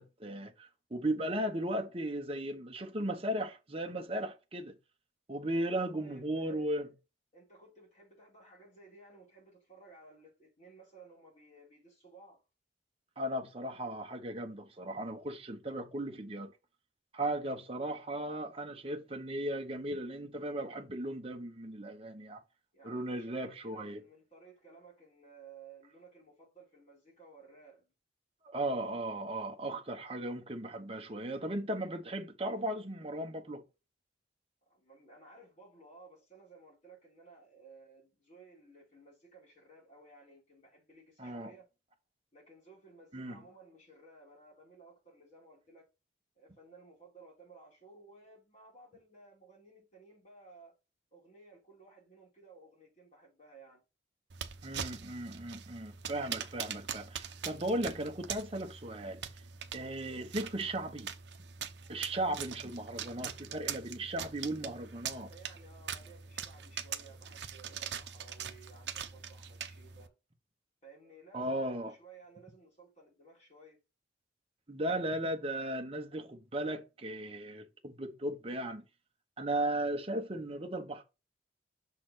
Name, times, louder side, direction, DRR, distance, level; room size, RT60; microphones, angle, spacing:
voice 1, 0.0-4.8 5.3-6.9 13.2-16.5 17.1-22.4 22.8-24.0 28.4-33.6 41.2-41.5 43.1-43.4 54.6-59.2 59.7-61.1 61.9-65.3 71.3-71.9 74.7-78.8 79.4-81.0, right 1 dB, 30° right, 0.9 m, -36 dB
voice 2, 5.7-6.8 7.3-12.4 22.7-27.9 34.7-41.7 42.3-45.9 46.3-50.7 51.1-53.8 65.2-70.2 70.8-73.8, right 3 dB, 40° left, 4.4 m, -57 dB
sound 1, 54.3-70.1, right 8 dB, 70° right, 0.7 m, -43 dB
6.4 x 4.2 x 4.0 m
head